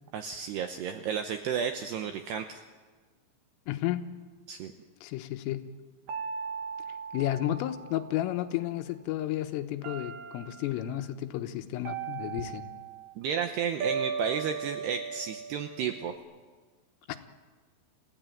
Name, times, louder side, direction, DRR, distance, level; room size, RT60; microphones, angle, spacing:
voice 1, 0.1-2.6 4.5-4.7 13.2-16.1, right 7 dB, 80° right, 7 dB, 2.4 m, -32 dB
voice 2, 3.7-4.1 5.0-5.6 7.1-12.7 17.1-17.2, left 13 dB, 80° left, 7 dB, 3.7 m, -32 dB
sound 1, 6.1-8.4 9.8-10.9 11.8-13.1 13.8-16.2, right 6 dB, 60° right, 2.4 m, -37 dB
26.5 x 16.0 x 9.2 m, 1.4 s
omnidirectional pair, 5.9 m